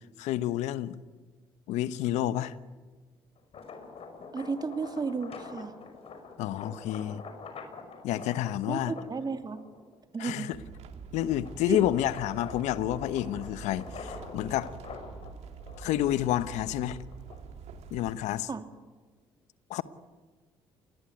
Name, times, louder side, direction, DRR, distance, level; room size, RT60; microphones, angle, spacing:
voice 1, 0.2-1.0 1.7-2.5 6.4-7.2 8.0-8.9 10.2-10.6 11.1-14.7 15.8-17.0 17.9-18.5 19.7-19.8, left 13 dB, 75° left, 1.1 m, -29 dB
sound 1, 3.4-10.0 10.5-17.7, left 5 dB, 55° left, 5.6 m, -46 dB
voice 2, 4.3-5.8 8.7-9.6 10.1-10.5 11.7-11.8 18.5-18.6, right 4 dB, 35° right, 2.9 m, -33 dB
sound 2, 10.5-18.1, right 6 dB, 65° right, 2.7 m, -46 dB
28.0 x 20.0 x 9.5 m
hypercardioid pair, 55°, 12 cm